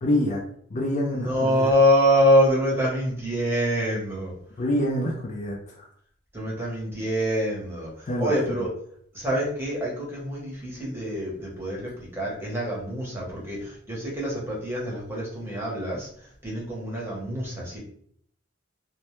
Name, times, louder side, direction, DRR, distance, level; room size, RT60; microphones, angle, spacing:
voice 1, 0.0-0.4 0.7-1.7 4.6-5.9 8.1-8.7, left 1 dB, 35° left, 0 dB, 0.4 m, -27 dB
voice 2, 1.1-4.3 6.3-8.7 9.1-16.1 16.4-17.8, equal, 10° right, -4 dB, 0.8 m, -25 dB
2.1 x 2.1 x 2.9 m, 0.62 s
head